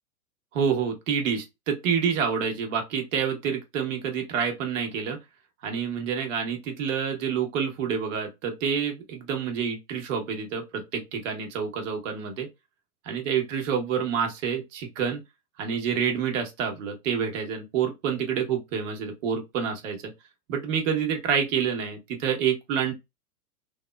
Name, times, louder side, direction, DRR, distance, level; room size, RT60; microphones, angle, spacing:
voice 1, 0.5-5.2 5.6-12.5 13.0-15.2 15.6-20.1 20.5-22.9, right 7 dB, 55° right, 1.2 m, -28 dB
3.4 x 2.0 x 2.3 m
hypercardioid pair, 120°, 46 cm